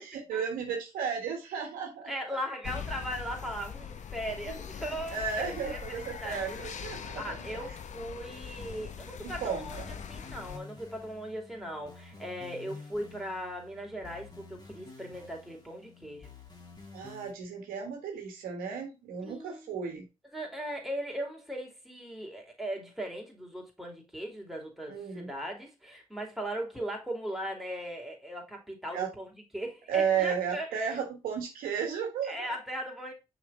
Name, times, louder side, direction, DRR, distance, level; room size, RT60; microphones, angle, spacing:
voice 1, 0.0-2.1 4.5-4.6 5.1-7.3 9.2-9.9 16.9-20.0 24.9-25.3 28.9-29.1 29.9-32.5, right 7 dB, 85° right, 1.5 m, -34 dB
voice 2, 2.0-6.6 7.2-16.3 19.2-19.8 20.3-31.0 32.2-33.1, equal, ahead, 2.9 m, -38 dB
sound 1, 2.6-10.6, left 7 dB, 55° left, 0.8 m, -41 dB
sound 2, 8.6-17.3, left 4 dB, 30° left, 2.6 m, -50 dB
6.0 x 4.2 x 4.0 m
supercardioid pair, 45°, 15 cm